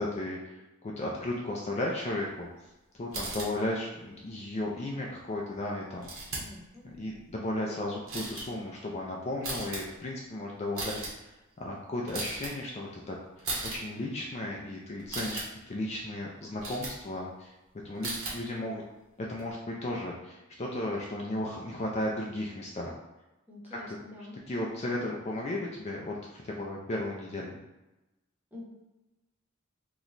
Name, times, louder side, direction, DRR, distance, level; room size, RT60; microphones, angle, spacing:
voice 1, 0.0-2.5 3.0-6.4 7.0-11.3 11.6-15.4 15.7-17.5 17.8-18.8 19.3-22.9 23.9-24.0 24.5-27.6, left 1 dB, 30° left, -2 dB, 0.4 m, -35 dB
sound 1, 3.1-3.5 6.0-6.6 6.9-7.3 8.1-8.4 9.4-9.8 10.6-11.1 12.1-12.5 13.4-13.8 15.0-15.4 16.6-16.9 17.9-18.4 19.4-19.5, right 2 dB, 70° right, 1.0 m, -36 dB
voice 2, 6.4-6.8 23.5-24.4 28.5-28.6, left 2 dB, 10° right, -5 dB, 0.8 m, -46 dB
3.0 x 2.1 x 3.8 m, 1.0 s
head